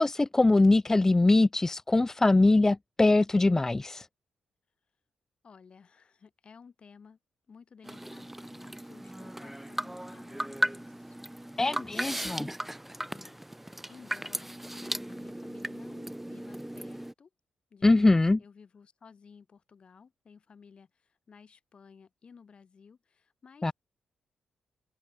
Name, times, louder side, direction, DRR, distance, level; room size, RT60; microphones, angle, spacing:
voice 1, 0.0-4.1 11.6-12.5 17.8-18.4 23.6-23.7, left 2 dB, 20° left, 0.3 m, -22 dB
voice 2, 5.4-7.2 7.5-11.2 11.8-12.5 13.1-13.4 13.7-17.3 17.7-23.7, left 6 dB, 50° left, 3.4 m, -55 dB
sound 1, 7.8-17.1, right 1 dB, 10° right, 1.3 m, -37 dB
hypercardioid pair, 40°, 2 cm